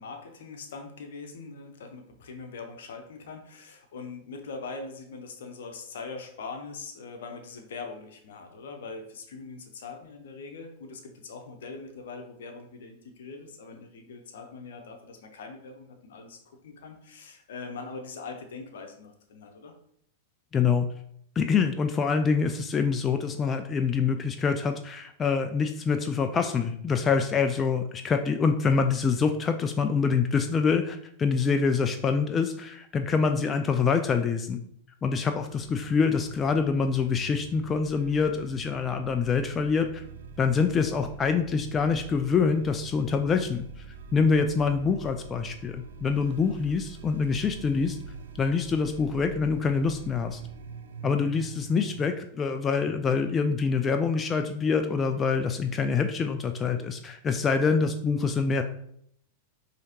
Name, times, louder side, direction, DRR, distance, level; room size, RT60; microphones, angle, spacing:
voice 1, 0.0-19.7, left 4 dB, 75° left, 5 dB, 0.7 m, -42 dB
voice 2, 20.5-20.9 21.4-34.6 35.0-40.0 40.4-43.8 44.1-48.0 48.4-50.4 51.0-58.6, left 5 dB, 25° left, 7 dB, 0.3 m, -25 dB
sound 1, 35.5-52.1, right 5 dB, 80° right, 0.4 m, -45 dB
4.7 x 2.8 x 2.9 m, 0.68 s
hypercardioid pair, 105°, 0 cm